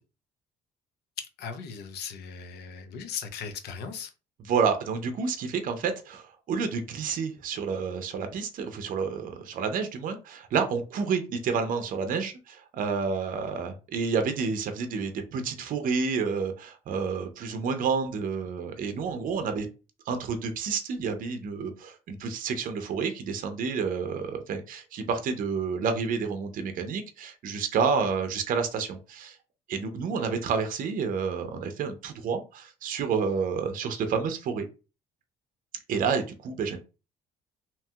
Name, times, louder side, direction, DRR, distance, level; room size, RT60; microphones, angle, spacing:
voice 1, 1.2-4.1, left 6 dB, 75° left, 0.7 m, -38 dB
voice 2, 4.4-19.7 20.1-29.4 29.7-34.6 35.9-36.8, right 5 dB, 55° right, 0.6 m, -29 dB
2.9 x 2.7 x 2.3 m
cardioid pair, 110°, 17 cm